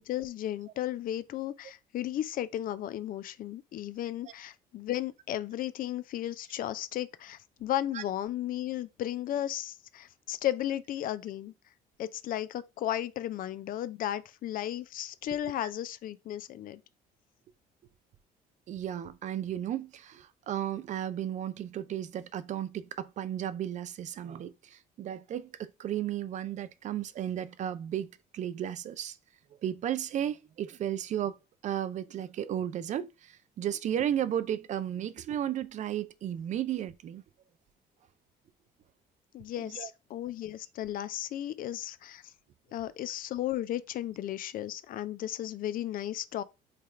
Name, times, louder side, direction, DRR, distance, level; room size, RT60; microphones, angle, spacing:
voice 1, 0.0-11.5 12.0-16.8 39.3-42.3 42.7-46.4, left 12 dB, 55° left, 0.4 m, -34 dB
voice 2, 18.7-28.1 28.3-29.2 29.6-31.4 31.6-37.2 39.6-39.9, right 10 dB, 45° right, 0.4 m, -34 dB
3.2 x 2.4 x 4.3 m
cardioid pair, 110°, 17 cm